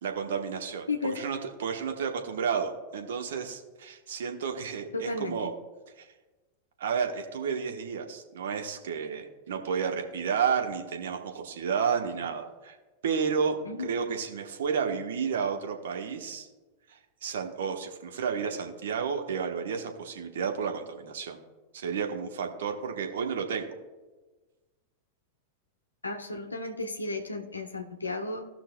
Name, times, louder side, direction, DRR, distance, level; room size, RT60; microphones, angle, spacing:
voice 1, 0.0-5.5 6.0-6.1 6.8-12.8 13.0-16.5 16.9-21.4 21.7-23.7, right 6 dB, 60° right, 4 dB, 1.0 m, -31 dB
voice 2, 0.9-1.2 4.9-5.5 13.6-13.9 26.0-28.4, left 3 dB, 80° left, 4 dB, 0.7 m, -34 dB
16.5 x 6.0 x 2.2 m, 1.2 s
figure-of-eight pair, 90°, 0 cm